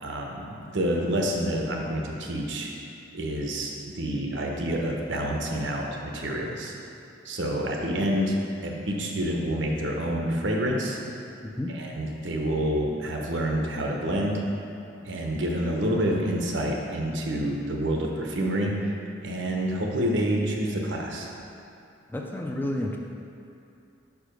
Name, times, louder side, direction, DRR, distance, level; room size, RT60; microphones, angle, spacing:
voice 1, 0.0-2.7 3.1-6.7 7.2-11.0 11.7-14.4 15.0-18.7 19.2-21.3, right 1 dB, 80° right, 0 dB, 0.8 m, -28 dB
voice 2, 11.4-11.7 22.1-23.0, left 1 dB, 10° left, 0 dB, 0.4 m, -31 dB
5.5 x 4.8 x 5.1 m, 2.7 s
head